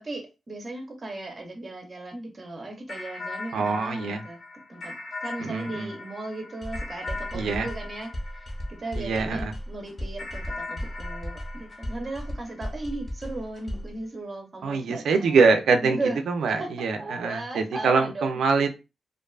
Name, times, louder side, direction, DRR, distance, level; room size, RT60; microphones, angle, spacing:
voice 1, 0.0-4.4 4.7-4.9 5.2-15.4 15.8-16.2 16.6-18.3, right 2 dB, 30° right, 2 dB, 0.6 m, -36 dB
sound 1, 2.9-9.5 10.2-12.9, left 3 dB, 65° left, 0.9 m, -40 dB
voice 2, 3.5-4.2 5.4-5.9 7.3-7.7 9.0-9.5 14.6-16.0 16.3-18.8, right 4 dB, 85° right, 6 dB, 0.4 m, -24 dB
sound 2, 6.6-14.0, equal, 30° left, 0.8 m, -35 dB
2.5 x 2.3 x 2.3 m, 0.28 s
cardioid pair, 115°, 0 cm